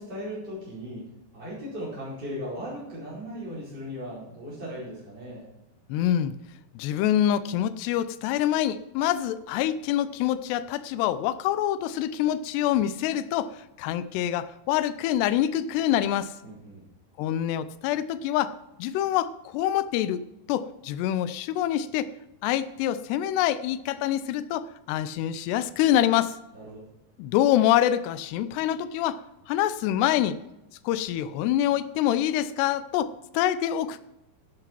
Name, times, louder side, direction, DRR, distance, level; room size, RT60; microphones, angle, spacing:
voice 1, 0.0-5.5 16.4-16.9 26.5-26.8, equal, 25° right, -10 dB, 5.1 m, -37 dB
voice 2, 5.9-6.4 6.8-16.4 17.2-18.5 18.8-22.1 22.4-26.4 27.2-29.2 29.5-30.4 30.8-34.0, left 11 dB, 80° left, 13 dB, 2.7 m, -26 dB
12.5 x 11.0 x 4.5 m, 0.90 s
omnidirectional pair, 5.1 m